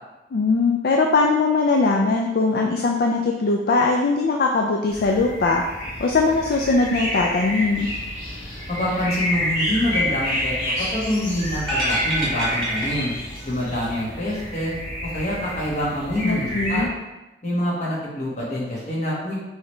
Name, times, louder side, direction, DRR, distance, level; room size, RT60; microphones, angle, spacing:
voice 1, 0.3-5.6 6.0-7.9 16.2-16.9, left 3 dB, 55° left, 1 dB, 0.4 m, -20 dB
sound 1, 4.9-16.9, equal, 80° left, 1.4 m, -29 dB
voice 2, 8.7-13.1 13.4-14.7 15.0-16.9 17.4-19.4, equal, 40° left, -6 dB, 1.4 m, -26 dB
sound 2, 11.6-13.5 13.8-13.9, right 1 dB, 5° left, 1.4 m, -28 dB
4.6 x 3.2 x 3.2 m, 1.1 s
head